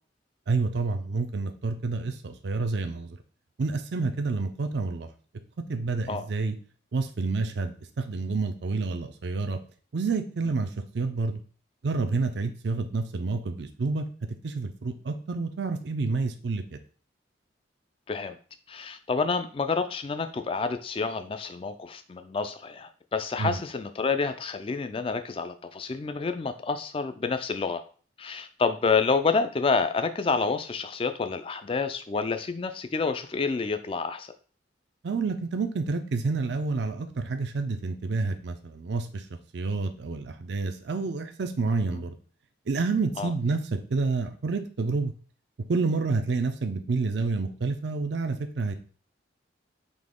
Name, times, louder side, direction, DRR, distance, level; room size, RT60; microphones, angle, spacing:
voice 1, 0.5-3.2 3.6-5.1 5.7-6.6 6.9-9.6 9.9-11.4 11.8-14.0 14.4-16.8 23.4-23.6 35.0-39.3 39.5-42.2 42.7-45.1 45.7-48.7, right 3 dB, 65° right, 7 dB, 0.4 m, -29 dB
voice 2, 18.1-18.4 18.7-27.8 28.2-34.3 41.9-42.0 43.2-43.3, left 4 dB, 30° left, 10 dB, 0.3 m, -28 dB
4.0 x 2.8 x 3.6 m, 0.41 s
head